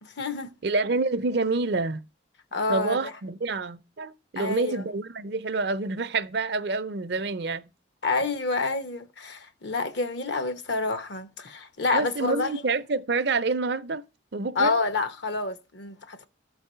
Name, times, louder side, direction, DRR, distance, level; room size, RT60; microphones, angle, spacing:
voice 1, 0.0-0.5 2.5-3.1 4.4-4.9 8.0-12.6 14.5-16.3, left 3 dB, 60° left, 1.0 m, -28 dB
voice 2, 0.6-2.0 2.7-7.7 11.9-14.0 14.3-14.8, right 3 dB, 55° right, 0.6 m, -27 dB
13.5 x 4.7 x 5.6 m
head